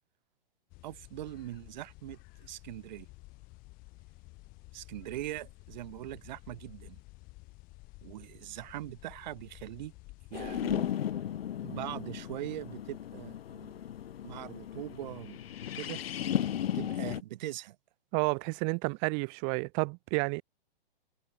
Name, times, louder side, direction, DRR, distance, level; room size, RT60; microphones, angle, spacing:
sound 1, 0.7-10.9, left 23 dB, 30° left, 3.6 m, -52 dB
voice 1, 0.8-3.1 4.7-7.0 8.0-9.9 10.3-10.9 11.6-13.8 14.2-15.4 15.7-16.0 16.7-17.8, right 15 dB, 50° right, 2.4 m, -41 dB
sound 2, 10.3-17.2, left 10 dB, 75° left, 0.8 m, -35 dB
voice 2, 18.1-20.4, right 40 dB or more, 20° right, 0.5 m, -30 dB
hypercardioid pair, 145°, 30 cm